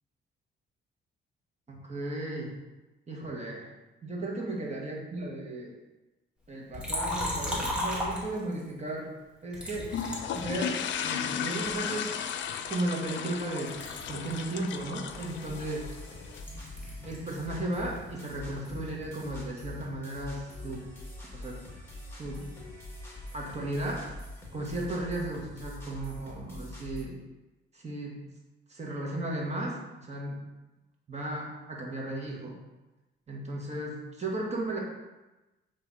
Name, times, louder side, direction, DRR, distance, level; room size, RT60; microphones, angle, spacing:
voice 1, 1.7-2.5 3.1-3.7 4.0-5.7 6.5-9.1 9.4-9.9 10.3-12.1 12.7-13.7 14.1-15.9 17.0-20.9 21.3-21.6 22.1-22.5 23.3-24.1 24.5-27.2 27.7-28.2 28.7-30.4 31.1-32.6 33.3-34.8, right 1 dB, 35° right, -2 dB, 1.8 m, -35 dB
Liquid, 6.7-8.7 9.5-11.1 11.7-13.4 13.7-17.3 17.6-19.3, left 1 dB, 5° right, 1.9 m, -37 dB
sound 1, 9.9-16.4, left 8 dB, 70° left, 0.5 m, -35 dB
sound 2, 15.1-27.0, left 1 dB, 10° left, 2.0 m, -44 dB
8.4 x 3.2 x 4.2 m, 1.1 s
cardioid pair, 90°, 20 cm